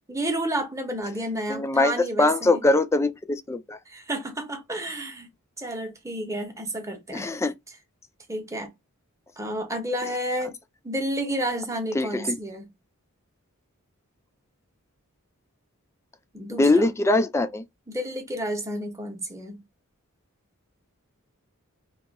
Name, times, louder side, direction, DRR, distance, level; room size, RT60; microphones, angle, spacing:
voice 1, 0.1-2.6 3.9-5.3 5.6-7.3 8.3-8.7 9.4-10.6 10.8-12.7 16.3-16.9 17.9-19.6, right 1 dB, 15° right, 0.8 m, -31 dB
voice 2, 1.5-3.8 7.1-7.5 11.9-12.4 16.6-17.6, left 2 dB, 15° left, 0.3 m, -22 dB
2.7 x 2.4 x 3.9 m
head